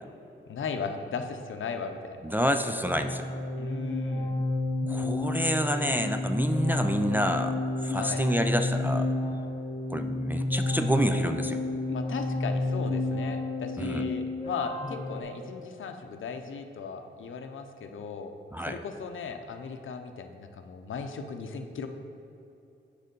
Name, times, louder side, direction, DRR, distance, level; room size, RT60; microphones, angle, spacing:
voice 1, 0.5-2.3 3.6-4.3 7.9-8.2 11.9-18.3 18.7-21.9, left 5 dB, 75° left, 6 dB, 0.6 m, -37 dB
voice 2, 2.2-3.2 4.9-7.6 7.8-9.1 9.9-11.6 13.8-14.1 18.5-18.8, equal, 10° right, 5 dB, 0.3 m, -28 dB
sound 1, 2.9-15.2, left 2 dB, 25° left, 0.6 m, -30 dB
6.6 x 4.9 x 5.3 m, 2.8 s
wide cardioid pair, 100°, 21 cm